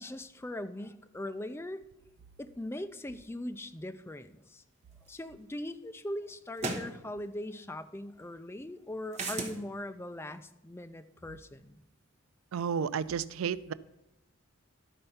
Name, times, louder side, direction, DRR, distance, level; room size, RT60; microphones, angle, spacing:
voice 1, 0.0-1.8 2.4-4.6 5.1-11.8, left 1 dB, 10° left, 9 dB, 0.4 m, -40 dB
sound 1, 5.2-5.3 6.6-6.9 9.1-9.6, right 3 dB, 35° right, 1.2 m, -34 dB
voice 2, 12.5-13.7, right 7 dB, 85° right, 17 dB, 0.4 m, -32 dB
12.0 x 4.4 x 5.6 m, 0.92 s
head